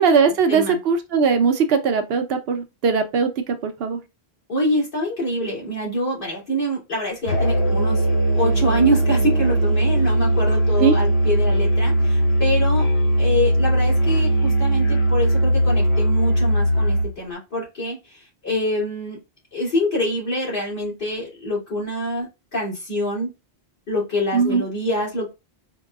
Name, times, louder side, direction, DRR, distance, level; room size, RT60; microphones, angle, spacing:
voice 1, 0.0-4.0 10.8-11.0 24.3-24.6, right 5 dB, 70° right, 0.8 m, -20 dB
voice 2, 4.5-8.1 8.3-12.9 13.2-19.2 19.5-23.3 23.9-25.3, equal, 55° left, 2.3 m, -25 dB
Musical instrument, 7.3-17.1, right 1 dB, 90° left, 1.2 m, -19 dB
4.5 x 2.2 x 2.2 m
omnidirectional pair, 1.1 m